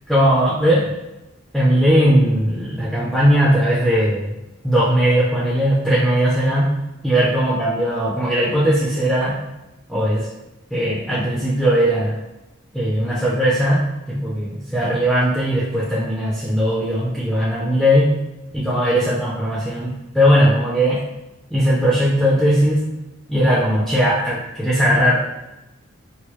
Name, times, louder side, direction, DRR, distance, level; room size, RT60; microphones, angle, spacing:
voice 1, 0.1-0.9 1.5-4.4 4.6-6.7 7.0-9.4 9.9-10.3 10.7-12.1 12.7-13.8 14.1-18.1 18.5-21.0 21.5-22.8 23.3-25.3, equal, ahead, -7 dB, 0.5 m, -18 dB
4.5 x 2.0 x 3.0 m, 0.96 s
head